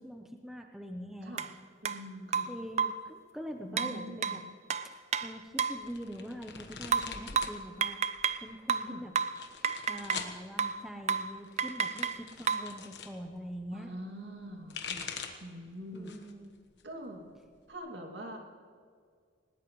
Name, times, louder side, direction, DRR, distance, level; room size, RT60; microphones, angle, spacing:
voice 1, 0.0-1.4 2.5-4.4 5.2-8.0 8.4-9.1 9.6-13.9 15.9-16.5, equal, ahead, 3 dB, 0.8 m, -43 dB
sound 1, 1.4-1.5 1.8-2.0 2.3-3.1 3.8-5.9 6.9-8.4 8.7-10.3 10.6-10.8 11.1-11.3 11.6-12.7, right 6 dB, 35° right, 0.4 m, -31 dB
voice 2, 1.8-2.5 3.6-4.5 8.9-9.0 13.7-16.1 16.8-17.3 17.7-18.4, equal, 60° right, 1 dB, 2.5 m, -44 dB
sound 2, 5.8-7.6 7.9-8.5 9.2-10.4 11.4-13.1 14.4-15.5 15.9-16.4 16.8-17.7, left 6 dB, 60° left, 1.3 m, -43 dB
20.0 x 19.0 x 3.2 m, 2.1 s
head